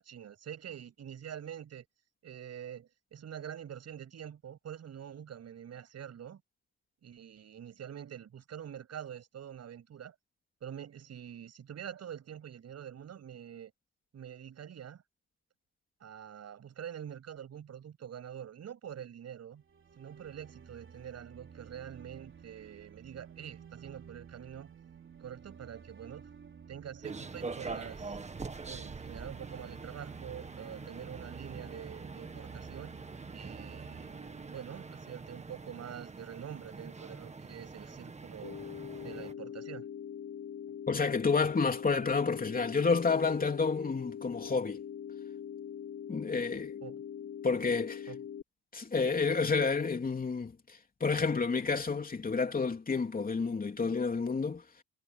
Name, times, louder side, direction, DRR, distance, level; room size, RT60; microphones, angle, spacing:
voice 1, 0.0-1.9 2.2-6.4 7.0-10.1 10.6-13.7 14.1-15.0 16.0-19.6 20.0-24.7 25.2-26.2 26.7-28.2 28.7-32.9 33.3-34.1 34.5-38.6 38.9-39.9 46.8-47.0 48.1-48.2, right 9 dB, 60° right, 7.6 m, -46 dB
sound 1, 19.6-35.7, right 7 dB, 40° right, 3.5 m, -52 dB
sound 2, 27.0-39.3, right 4 dB, 25° right, 1.7 m, -45 dB
sound 3, 38.4-48.4, left 8 dB, 50° left, 5.1 m, -42 dB
voice 2, 40.9-44.8 46.1-46.8 47.4-48.1 48.7-54.6, left 4 dB, 30° left, 3.3 m, -30 dB
cardioid pair, 105°, 29 cm